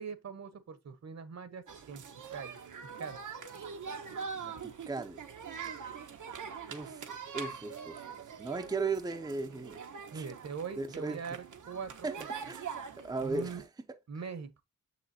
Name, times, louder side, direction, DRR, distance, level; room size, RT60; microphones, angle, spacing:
voice 1, 0.0-2.0 2.3-2.6 3.0-3.2 10.1-12.5 13.2-13.6 14.1-14.6, right 6 dB, 60° right, 1.1 m, -42 dB
sound 1, 1.7-13.7, right 6 dB, 85° right, 1.3 m, -43 dB
voice 2, 4.4-5.2 6.7-7.1 7.3-8.0 8.4-9.8 10.1-10.3 10.8-11.2 12.0-12.2 12.5-12.6 13.0-13.6, right 3 dB, 15° right, 0.5 m, -36 dB
6.9 x 6.3 x 2.8 m
wide cardioid pair, 165°, 30 cm